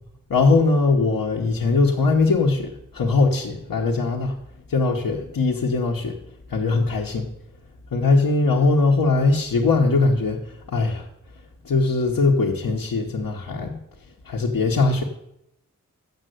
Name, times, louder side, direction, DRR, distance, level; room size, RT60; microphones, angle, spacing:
voice 1, 0.3-4.4 4.7-6.2 6.5-7.3 7.9-11.1 11.6-13.8 14.2-15.0, left 3 dB, 80° left, -1 dB, 1.1 m, -21 dB
7.3 x 6.6 x 7.8 m, 0.82 s
wide cardioid pair, 85°, 34 cm